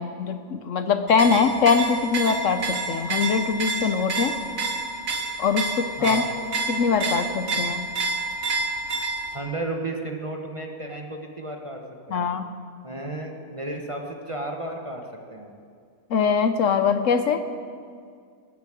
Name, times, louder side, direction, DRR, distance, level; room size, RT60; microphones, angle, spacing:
voice 1, 0.0-4.3 5.4-6.2 6.7-7.9 12.1-12.5 16.1-17.4, left 5 dB, 65° left, 9 dB, 1.0 m, -22 dB
sound 1, 1.1-9.4, right 3 dB, 70° right, 1.7 m, -29 dB
voice 2, 6.0-6.4 7.5-7.7 9.3-11.8 12.1-12.3 12.8-15.0 15.3-15.6, right 2 dB, 25° right, 2 dB, 1.1 m, -33 dB
19.0 x 7.3 x 7.6 m, 2.2 s
omnidirectional pair, 1.5 m